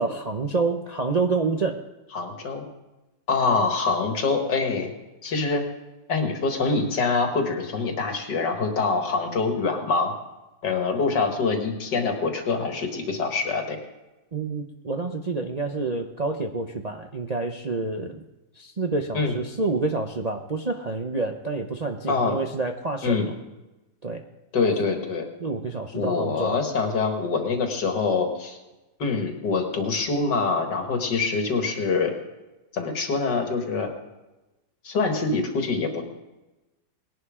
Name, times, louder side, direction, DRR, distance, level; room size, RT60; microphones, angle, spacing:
voice 1, 0.0-1.8 14.3-18.2 18.6-23.3 24.0-24.2 25.4-26.6, right 3 dB, 45° right, 3 dB, 0.5 m, -28 dB
voice 2, 2.1-2.6 3.3-4.9 5.2-5.6 6.1-10.1 10.6-13.8 19.1-19.4 22.1-22.4 23.0-23.3 24.5-25.3 25.9-28.6 29.0-32.1 32.7-33.9 34.8-36.0, left 4 dB, 85° left, 4 dB, 2.4 m, -25 dB
20.0 x 11.0 x 3.7 m, 1.1 s
omnidirectional pair, 1.8 m